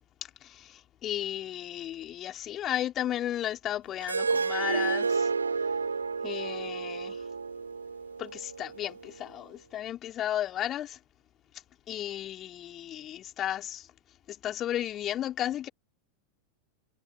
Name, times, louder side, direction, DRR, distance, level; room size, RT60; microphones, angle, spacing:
voice 1, 0.4-5.3 6.2-7.2 8.2-11.0 11.9-13.9 14.3-15.7, left 12 dB, 30° left, 4.1 m, -34 dB
Harp, 4.0-9.2, right 5 dB, 75° right, 3.0 m, -31 dB
figure-of-eight pair, 90°, 0 cm